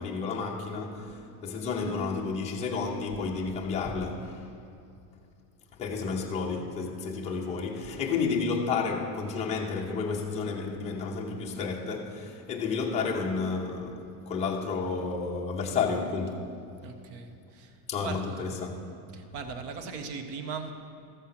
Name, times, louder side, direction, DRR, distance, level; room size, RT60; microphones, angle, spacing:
voice 1, 0.0-4.5 5.8-16.6 17.9-18.8, left 4 dB, 15° left, 0.8 m, -31 dB
voice 2, 16.8-17.8 18.0-18.7 19.1-20.7, right 5 dB, 30° right, 0.7 m, -39 dB
13.5 x 7.2 x 5.8 m
supercardioid pair, 175°, 48 cm